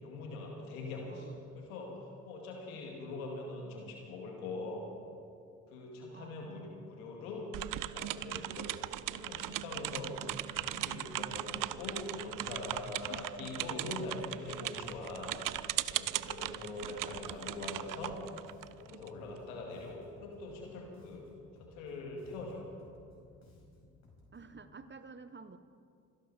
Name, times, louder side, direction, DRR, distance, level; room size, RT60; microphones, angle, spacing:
voice 1, 0.0-4.9 5.7-7.5 7.7-8.8 9.1-10.2 10.5-15.3 15.9-18.2 18.8-21.3 21.6-22.6, left 2 dB, 85° left, 0 dB, 2.3 m, -43 dB
voice 2, 1.1-1.4 6.1-6.4 24.3-25.6, right 4 dB, 25° right, 12 dB, 1.0 m, -51 dB
sound 1, 7.5-19.1, right 14 dB, 50° right, 0.5 m, -38 dB
Bass guitar, 14.8-24.6, left 2 dB, 40° left, 5.0 m, -60 dB
26.5 x 11.5 x 4.2 m, 2.4 s
hypercardioid pair, 45°, 41 cm